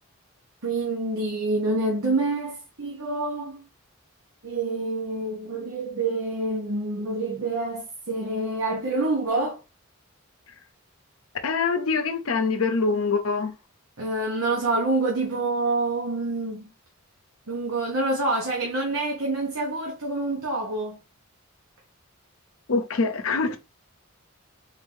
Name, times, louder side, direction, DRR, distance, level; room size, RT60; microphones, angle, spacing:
voice 1, 0.6-3.6 4.4-9.6 14.0-16.7 17.5-21.0, right 2 dB, 70° right, 1.1 m, -27 dB
voice 2, 11.4-13.5 22.7-23.6, left 4 dB, 70° left, 0.7 m, -24 dB
3.9 x 2.7 x 3.4 m
head